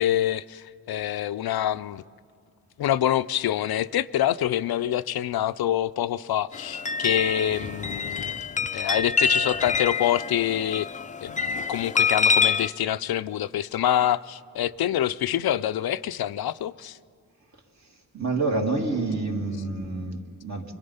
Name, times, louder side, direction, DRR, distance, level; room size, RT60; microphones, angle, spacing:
voice 1, 0.0-2.0 2.8-8.3 8.7-10.9 11.2-17.0, left 11 dB, 80° left, 0.5 m, -26 dB
sound 1, 6.5-12.7, left 5 dB, 20° left, 0.5 m, -26 dB
voice 2, 18.1-20.7, right 3 dB, 45° right, 2.6 m, -28 dB
25.0 x 23.0 x 5.6 m
wide cardioid pair, 110°, 37 cm